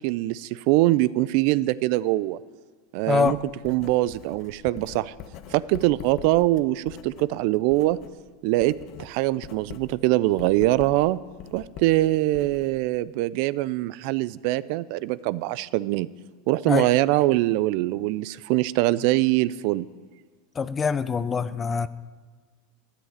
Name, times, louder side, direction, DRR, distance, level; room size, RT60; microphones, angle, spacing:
voice 1, 0.0-2.4 2.9-3.4 3.6-5.1 5.5-8.0 8.4-11.2 11.5-16.1 16.5-19.9, right 17 dB, 60° right, 19 dB, 0.3 m, -23 dB
voice 2, 3.1-3.4 16.7-16.9 20.6-21.9, left 6 dB, 20° left, 16 dB, 0.4 m, -24 dB
Writing, 3.2-8.2 8.5-13.1, left 9 dB, 50° left, 0.8 m, -44 dB
13.0 x 5.5 x 8.8 m, 1.5 s
supercardioid pair, 125°, 0 cm